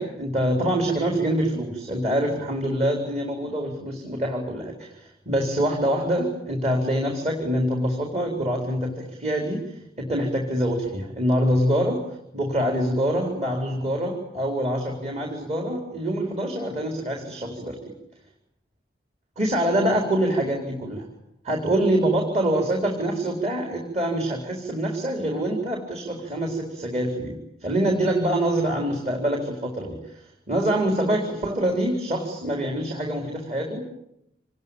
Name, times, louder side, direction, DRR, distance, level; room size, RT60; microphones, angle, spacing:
voice 1, 0.0-9.6 10.0-12.0 12.3-17.9 19.4-21.1 21.4-33.8, right 1 dB, 35° right, 2 dB, 4.3 m, -25 dB
27.0 x 20.5 x 8.9 m, 0.79 s
head